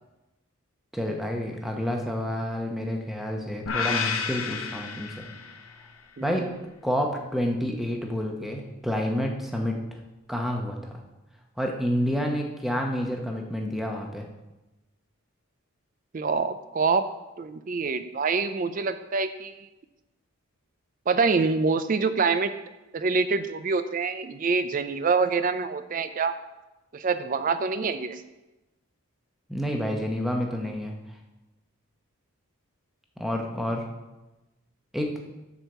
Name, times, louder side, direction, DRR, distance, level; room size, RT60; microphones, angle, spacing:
voice 1, 0.9-5.5 6.2-6.5 6.8-9.8 10.3-11.0 11.6-14.2 29.5-30.9 33.2-33.8 34.9-35.1, equal, ahead, 1 dB, 0.9 m, -29 dB
sound 1, 3.7-5.9, left 6 dB, 60° left, 0.7 m, -31 dB
voice 2, 16.1-17.0 17.4-19.7 21.1-22.5 22.9-26.3 26.9-28.2, right 4 dB, 35° right, 11 dB, 0.4 m, -26 dB
8.1 x 4.6 x 6.6 m, 1.0 s
head